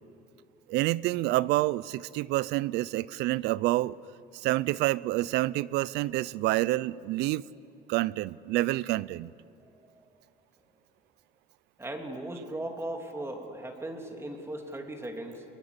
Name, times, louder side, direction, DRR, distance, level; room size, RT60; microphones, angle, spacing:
voice 1, 0.7-4.0 4.3-7.4 7.9-9.3, right 17 dB, 90° right, 0.5 m, -28 dB
voice 2, 11.8-15.4, right 1 dB, 15° right, 3.1 m, -38 dB
22.5 x 22.0 x 9.8 m
cardioid pair, 110°, 17 cm